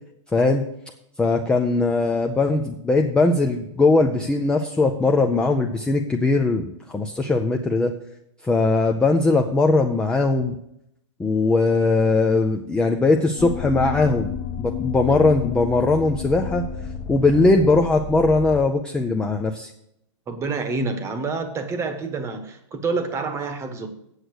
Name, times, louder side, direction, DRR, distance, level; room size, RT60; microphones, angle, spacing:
voice 1, 0.3-0.6 1.2-7.9 8.4-10.5 11.2-16.6 17.1-19.7, left 3 dB, 5° left, 4 dB, 0.4 m, -20 dB
sound 1, 13.4-18.6, left 7 dB, 45° left, 1.2 m, -31 dB
voice 2, 20.3-23.9, right 4 dB, 15° right, 9 dB, 1.1 m, -27 dB
8.0 x 7.9 x 6.3 m, 0.78 s
hypercardioid pair, 155°, 16 cm